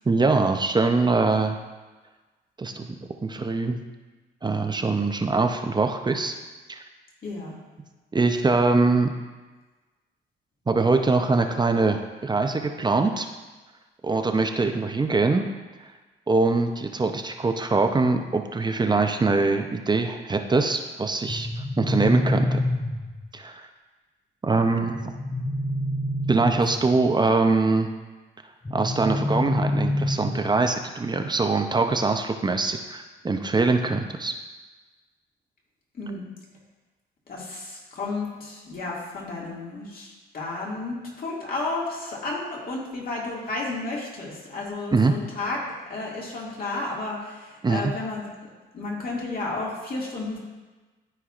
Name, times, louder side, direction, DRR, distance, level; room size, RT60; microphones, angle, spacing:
voice 1, 0.1-1.6 2.6-3.8 4.4-6.3 6.7-6.8 8.1-9.1 10.7-13.3 14.0-15.4 16.3-21.5 21.8-22.6 23.3-23.6 24.4-25.0 26.3-27.9 28.7-34.3 44.9-45.2 47.6-47.9, right 3 dB, 20° right, 5 dB, 0.6 m, -23 dB
voice 2, 7.2-7.6 35.9-36.3 37.3-45.6 45.9-48.5 48.7-50.4, left 2 dB, 50° left, -4 dB, 2.1 m, -32 dB
sound 1, 21.3-23.3 25.0-27.0 28.7-30.7, left 1 dB, 15° left, 0.7 m, -27 dB
13.5 x 4.6 x 2.4 m, 1.3 s
cardioid pair, 90°, 20 cm